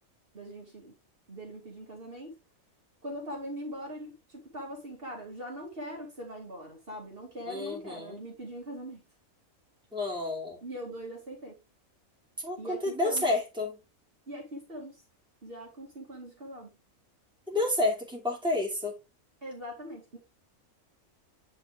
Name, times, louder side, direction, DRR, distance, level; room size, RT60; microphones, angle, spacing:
voice 1, 0.3-0.9 1.3-2.3 3.0-9.0 10.6-11.6 12.6-13.2 14.3-15.0 15.4-16.7 19.4-20.2, equal, 40° right, 2.7 m, -41 dB
voice 2, 7.5-8.2 9.9-10.6 12.4-13.8 17.5-19.0, left 2 dB, 5° right, 2.8 m, -30 dB
9.1 x 4.4 x 3.5 m
omnidirectional pair, 1.4 m